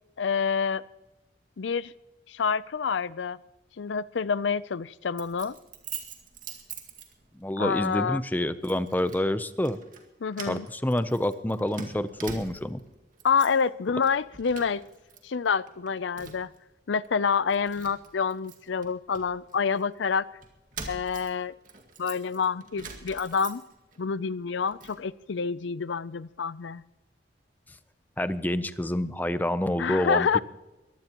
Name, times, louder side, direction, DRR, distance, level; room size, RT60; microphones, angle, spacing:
voice 1, 0.2-0.8 1.6-1.9 2.3-3.4 3.8-5.5 7.6-8.2 10.2-10.7 13.2-14.8 15.2-16.5 16.9-20.3 20.9-21.5 22.0-23.6 24.0-26.8 29.8-30.4, left 6 dB, 80° left, 18 dB, 0.5 m, -27 dB
Keys jangling, 5.2-7.5 7.8-8.0 8.6-9.3 9.6-10.0 10.3-12.8 13.1-13.7 14.0-15.2 15.5-16.6 17.0-17.1 17.5-19.8 20.4-24.0 24.3-25.0, right 6 dB, 45° right, 2.1 m, -44 dB
voice 2, 7.4-9.8 10.5-12.8 28.2-30.4, left 1 dB, 10° left, 13 dB, 0.6 m, -28 dB
22.5 x 17.0 x 3.0 m, 1.1 s
head